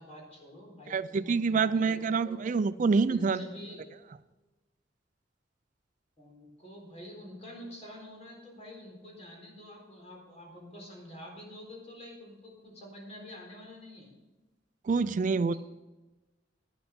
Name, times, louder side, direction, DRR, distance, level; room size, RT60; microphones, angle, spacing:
voice 1, 0.0-2.4 3.1-3.8 6.2-14.1, equal, 35° left, -1 dB, 4.0 m, -47 dB
voice 2, 0.9-3.4 14.8-15.5, right 4 dB, 45° right, 12 dB, 0.4 m, -26 dB
11.5 x 9.4 x 5.2 m, 1.1 s
head